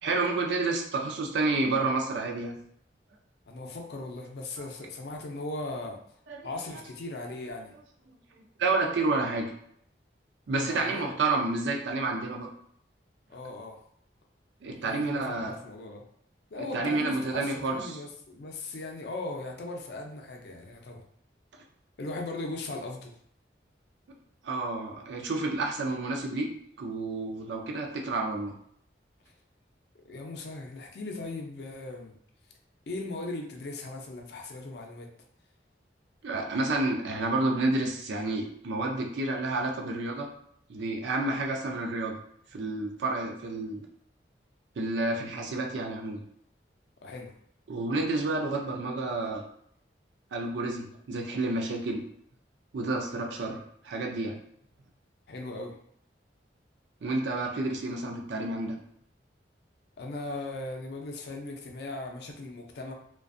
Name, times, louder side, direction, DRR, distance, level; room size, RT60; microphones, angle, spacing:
voice 1, 0.0-2.6 4.6-4.7 6.3-6.8 8.6-9.5 10.5-12.5 14.6-15.6 16.5-18.0 24.4-26.5 26.8-28.5 36.2-40.3 40.7-42.1 42.5-43.8 44.8-46.2 47.7-49.5 50.3-52.0 52.7-54.4 57.0-58.8, right 2 dB, 80° right, 2 dB, 0.4 m, -30 dB
voice 2, 3.5-6.0 6.4-7.7 10.6-11.1 13.3-13.8 14.7-16.0 16.5-21.0 22.0-23.1 30.1-32.2 32.9-35.1 47.0-47.3 55.3-55.8 60.0-62.9, left 2 dB, 65° left, 2 dB, 0.4 m, -38 dB
2.4 x 2.2 x 2.5 m, 0.67 s
head